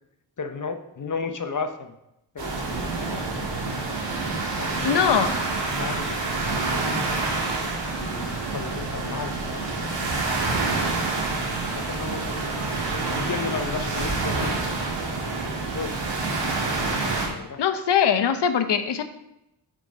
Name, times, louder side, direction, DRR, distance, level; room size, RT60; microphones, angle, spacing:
voice 1, 0.4-1.9 2.3-3.3 4.6-5.1 5.7-6.2 6.5-7.1 8.0-9.9 11.5-12.5 12.8-14.6 15.5-16.0 17.2-17.6, left 5 dB, 45° left, 8 dB, 0.9 m, -34 dB
sound 1, 2.4-17.3, right 3 dB, 80° right, 2.1 m, -27 dB
voice 2, 4.8-5.4 17.6-19.0, left 8 dB, 75° left, 9 dB, 0.8 m, -21 dB
6.5 x 4.9 x 5.0 m, 0.85 s
cardioid pair, 50°, 42 cm